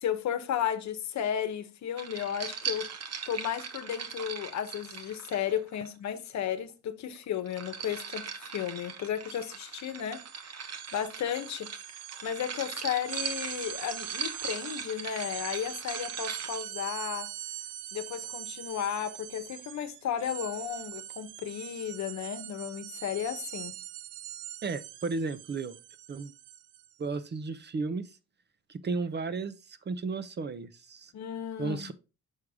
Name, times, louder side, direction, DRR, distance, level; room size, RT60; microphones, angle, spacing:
voice 1, 0.0-2.9 3.3-10.6 10.9-17.3 17.9-23.7 31.1-31.9, left 9 dB, 65° left, 1.0 m, -34 dB
sound 1, 2.0-5.9 7.2-16.6, right 7 dB, 55° right, 1.2 m, -40 dB
sound 2, 9.2-9.4 9.7-26.9, right 14 dB, 90° right, 0.6 m, -43 dB
voice 2, 24.6-25.7 26.1-26.3 27.0-28.1 28.7-31.1 31.6-31.9, right 4 dB, 35° right, 0.7 m, -34 dB
6.4 x 4.7 x 3.5 m
cardioid pair, 90°, 30 cm